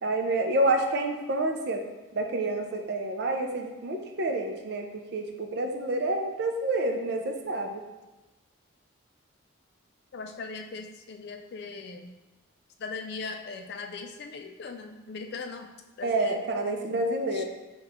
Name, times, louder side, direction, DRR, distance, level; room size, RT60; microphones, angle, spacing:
voice 1, 0.0-1.8 2.1-7.8 16.0-17.4, right 2 dB, 55° right, 4 dB, 0.4 m, -28 dB
voice 2, 10.1-12.1 12.8-15.7 16.0-16.4 17.3-17.4, left 4 dB, 50° left, 5 dB, 0.3 m, -39 dB
5.3 x 2.3 x 3.4 m, 1.1 s
head